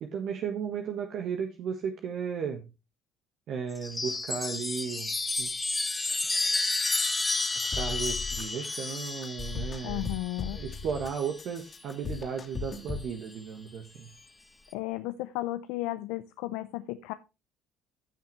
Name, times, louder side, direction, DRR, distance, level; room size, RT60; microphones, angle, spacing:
voice 1, 0.0-2.6 3.5-5.5 7.6-10.1 10.5-14.1, right 7 dB, 60° right, 4 dB, 1.3 m, -35 dB
Chime, 3.7-11.5 12.8-13.4, left 3 dB, 20° left, 2.3 m, -32 dB
sound 1, 7.7-8.4 8.7-11.1 11.4-13.1, left 5 dB, 40° left, 2.8 m, -37 dB
voice 2, 9.8-10.6 14.7-17.1, left 17 dB, 75° left, 12 dB, 0.6 m, -34 dB
15.0 x 5.9 x 3.2 m, 0.27 s
hypercardioid pair, 60°, 0 cm